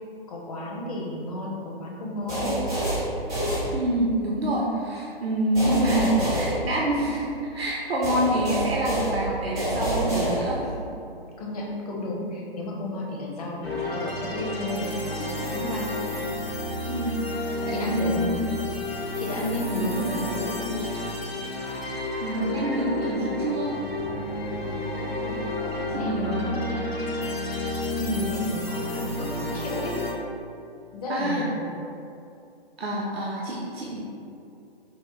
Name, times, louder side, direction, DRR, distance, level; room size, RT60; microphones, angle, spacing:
voice 1, 0.3-2.5 11.4-15.9 17.7-18.5 19.2-20.8 26.0-26.9 28.0-29.9 30.9-31.7, left 1 dB, 40° left, -2 dB, 0.7 m, -31 dB
sound 1, 2.3-4.2 5.5-7.3 8.0-10.8, right 1 dB, 5° right, 0.3 m, -28 dB
voice 2, 3.7-10.7 16.9-18.3 22.2-23.8 25.9-26.6 31.1-31.5 32.8-34.0, right 1 dB, 75° right, -4 dB, 0.6 m, -27 dB
sound 2, 13.6-30.1, left 1 dB, 75° left, 0.8 m, -31 dB
5.0 x 2.1 x 2.9 m, 2.6 s
figure-of-eight pair, 130°, 30 cm